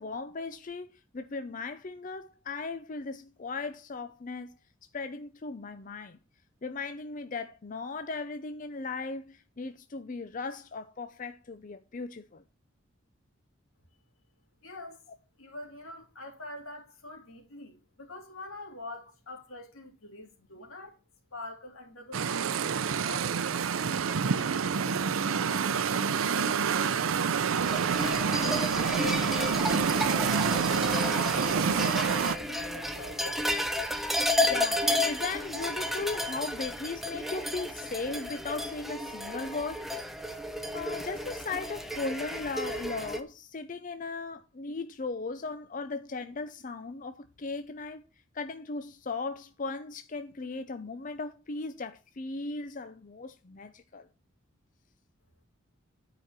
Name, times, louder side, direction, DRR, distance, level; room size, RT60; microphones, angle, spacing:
voice 1, 0.0-4.5 4.9-6.2 6.6-12.4 34.4-39.9 40.7-48.0 48.3-54.1, left 3 dB, 40° left, 0.5 m, -37 dB
voice 2, 14.6-15.0 15.4-20.9 21.3-23.3 24.1-27.1 28.0-33.5, left 2 dB, 85° left, 2.9 m, -45 dB
sound 1, 22.1-32.4, right 6 dB, 80° right, 0.5 m, -27 dB
sound 2, 27.5-43.2, left 1 dB, ahead, 0.8 m, -32 dB
9.4 x 5.0 x 5.7 m
head